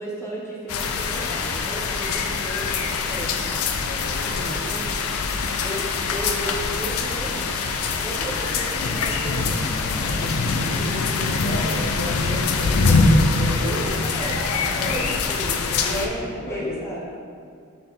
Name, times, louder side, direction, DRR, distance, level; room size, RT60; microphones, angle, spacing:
voice 1, 0.0-3.7 4.2-4.3 4.6-5.2 5.6-7.5 7.9-11.0 13.6-14.4 14.8-17.1, right 1 dB, 10° left, -5 dB, 1.0 m, -34 dB
sound 1, 0.7-16.1, left 4 dB, 70° left, 0.5 m, -24 dB
voice 2, 3.4-4.6 10.5-13.8 14.2-15.2 15.6-16.8, left 2 dB, 45° left, -3 dB, 1.0 m, -33 dB
5.9 x 4.2 x 5.2 m, 2.3 s
head